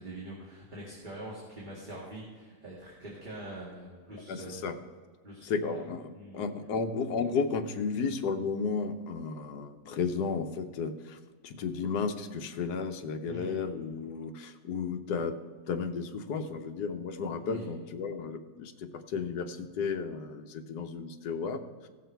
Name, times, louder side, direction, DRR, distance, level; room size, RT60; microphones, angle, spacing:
voice 1, 0.0-4.8 5.2-5.8 6.1-6.4 13.2-13.6 17.4-17.7, right 1 dB, 30° right, -5 dB, 2.1 m, -44 dB
voice 2, 4.3-4.8 5.4-11.2 11.4-15.4 15.7-21.9, left 5 dB, 75° left, 8 dB, 1.3 m, -33 dB
17.0 x 6.3 x 4.5 m, 1.5 s
omnidirectional pair, 1.8 m